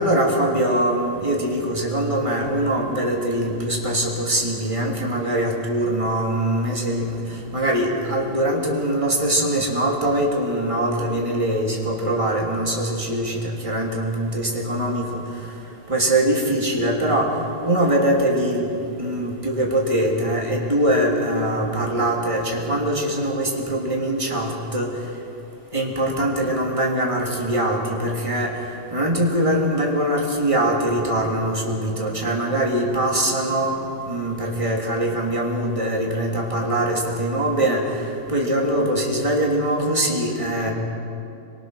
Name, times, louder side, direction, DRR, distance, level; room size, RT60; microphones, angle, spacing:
voice 1, 0.0-15.2 15.9-17.4 17.6-18.7 19.0-24.9 25.7-28.5 28.9-33.8 34.1-40.7, right 1 dB, 10° right, -2 dB, 2.5 m, -22 dB
26.0 x 23.0 x 6.4 m, 2.7 s
omnidirectional pair, 3.8 m